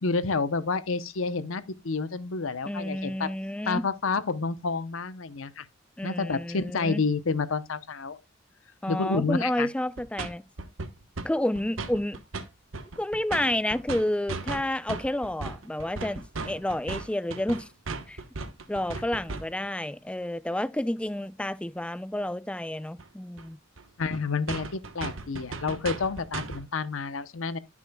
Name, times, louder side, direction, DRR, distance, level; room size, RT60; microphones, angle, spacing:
voice 1, 0.0-3.3 3.7-5.7 6.0-8.2 8.9-9.7 24.0-27.6, left 4 dB, 85° left, 0.8 m, -29 dB
voice 2, 2.7-3.8 6.0-7.0 8.8-10.4 11.2-12.2 13.0-17.7 18.1-18.2 18.7-23.6, left 1 dB, 5° left, 0.4 m, -30 dB
sound 1, 10.0-10.3 10.6-11.3 11.6-12.5 12.7-19.7 23.0-23.1 23.4-23.5 23.8-23.9 24.1-24.2 24.5-26.7, right 3 dB, 80° right, 1.1 m, -36 dB
14.0 x 6.1 x 2.2 m
head